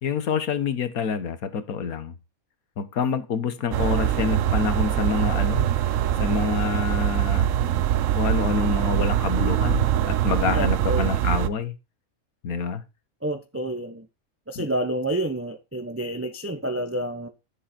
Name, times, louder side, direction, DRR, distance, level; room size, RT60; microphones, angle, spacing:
voice 1, 0.0-2.1 2.8-5.7 6.2-7.5 8.1-11.7 12.4-12.8 14.5-14.7, left 6 dB, 85° left, 1.6 m, -27 dB
sound 1, 3.7-11.5, right 11 dB, 70° right, 1.0 m, -23 dB
voice 2, 10.5-11.2 13.2-14.1 14.5-17.3, right 1 dB, 10° right, 0.8 m, -29 dB
10.0 x 7.2 x 4.2 m
omnidirectional pair, 1.5 m